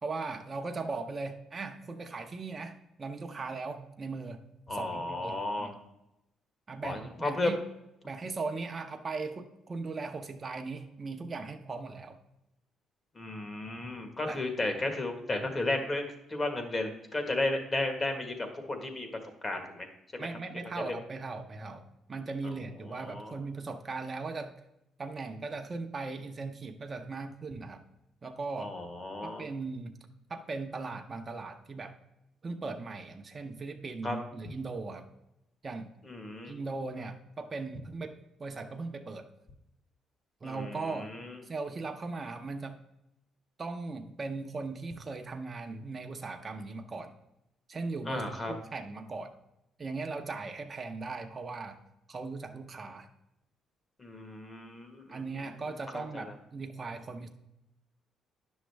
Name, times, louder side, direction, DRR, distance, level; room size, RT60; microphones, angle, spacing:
voice 1, 0.0-4.4 4.7-5.8 6.7-7.6 8.0-12.2 14.3-14.4 20.2-24.5 25.0-27.8 28.2-28.7 29.2-29.9 30.3-31.9 32.4-35.0 35.6-35.9 36.5-38.1 38.4-39.3 40.4-41.1 41.4-42.8 43.6-47.1 47.7-49.3 49.8-51.8 52.1-53.1 55.1-57.3, right 3 dB, 30° right, 4 dB, 0.8 m, -38 dB
voice 2, 4.7-5.7 6.8-7.5 13.1-16.0 16.3-19.1 19.4-19.9 20.1-20.3 20.8-20.9 22.9-23.3 28.6-29.5 34.0-34.2 36.0-36.5 40.4-41.4 48.1-48.5 54.0-55.2 55.9-56.2, left 2 dB, 30° left, 5 dB, 1.5 m, -34 dB
9.9 x 6.3 x 3.4 m, 0.87 s
cardioid pair, 85°, 0 cm